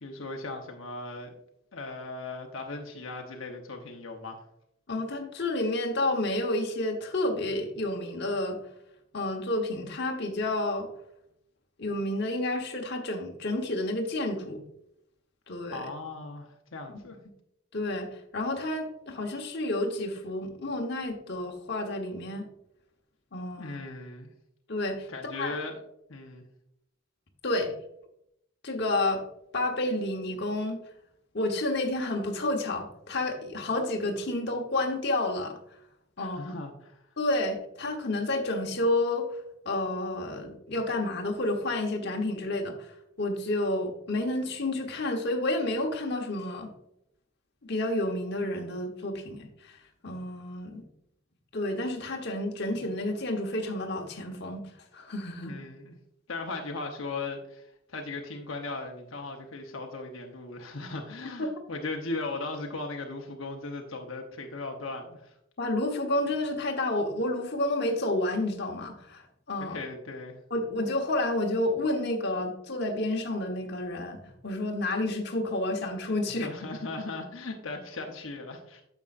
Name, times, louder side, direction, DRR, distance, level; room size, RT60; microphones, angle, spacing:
voice 1, 0.0-1.3 1.7-4.4 15.7-17.2 23.6-24.3 25.1-25.8 26.1-26.5 36.2-36.9 55.4-56.0 56.3-65.3 69.6-70.4 76.4-78.8, left 3 dB, 75° left, 2 dB, 1.0 m, -38 dB
voice 2, 4.9-8.6 9.1-10.9 11.8-14.6 15.5-15.9 17.7-22.5 23.3-23.8 24.7-25.1 25.4-25.6 27.4-27.7 28.6-29.2 29.5-30.8 31.3-35.6 36.2-36.5 37.2-39.4 39.6-42.9 43.2-46.7 47.6-49.8 50.0-50.9 51.5-54.6 54.9-55.5 61.4-61.5 65.6-69.8 70.5-76.5, left 1 dB, 55° left, 2 dB, 1.1 m, -30 dB
9.6 x 7.1 x 2.5 m, 0.77 s
head